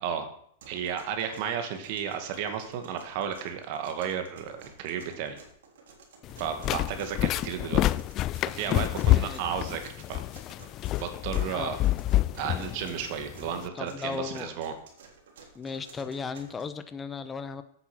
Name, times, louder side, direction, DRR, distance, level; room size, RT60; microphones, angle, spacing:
sound 1, 0.6-16.6, right 5 dB, 80° right, 3.3 m, -53 dB
voice 1, 0.7-4.5 4.8-5.4 6.4-8.0 8.4-9.8 10.1-10.2 11.0-11.8 12.4-14.7, right 8 dB, 55° right, 7 dB, 2.0 m, -33 dB
sound 2, 6.2-13.7, left 15 dB, 35° left, 0.3 m, -28 dB
voice 2, 9.0-9.4 11.5-11.8 13.7-14.6 15.5-17.6, left 5 dB, 15° left, 12 dB, 0.8 m, -36 dB
8.6 x 7.8 x 6.2 m, 0.66 s
hypercardioid pair, 130°, 0 cm